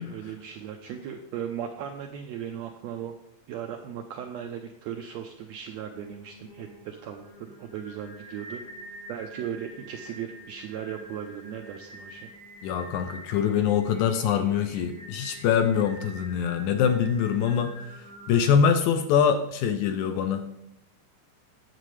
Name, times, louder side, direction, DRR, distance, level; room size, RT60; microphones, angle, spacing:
voice 1, 0.0-3.1 3.5-8.6 9.1-12.3, right 9 dB, 90° right, 4 dB, 1.5 m, -37 dB
Singing, 5.9-18.5, equal, 55° left, 4.9 m, -47 dB
voice 2, 12.6-17.7 18.3-20.5, left 7 dB, 80° left, 8 dB, 1.8 m, -24 dB
9.1 x 7.5 x 3.2 m, 0.81 s
omnidirectional pair, 3.7 m